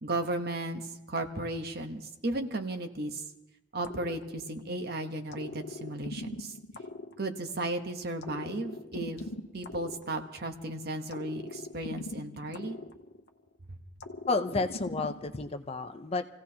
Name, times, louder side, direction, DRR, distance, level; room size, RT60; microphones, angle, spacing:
voice 1, 0.0-3.2 3.7-6.5 7.2-9.3 9.5-12.8, right 2 dB, 55° right, 6 dB, 1.1 m, -35 dB
sound 1, 3.8-4.8 5.3-7.7 8.2-10.6 11.1-13.5 14.0-15.5, left 2 dB, 60° left, 0.8 m, -42 dB
voice 2, 14.3-16.3, left 3 dB, 30° left, 8 dB, 0.6 m, -31 dB
27.5 x 16.5 x 2.8 m, 0.92 s
head